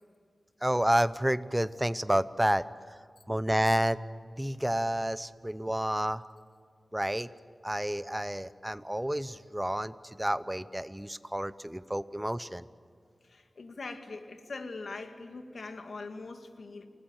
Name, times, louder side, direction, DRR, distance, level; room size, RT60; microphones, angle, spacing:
voice 1, 0.6-2.6 3.3-4.0 4.4-6.2 6.9-7.3 7.6-12.7, right 1 dB, 10° right, 14 dB, 0.8 m, -29 dB
voice 2, 13.2-16.9, left 3 dB, 75° left, 6 dB, 2.2 m, -42 dB
28.5 x 19.0 x 9.0 m, 2.1 s
wide cardioid pair, 95°, 0 cm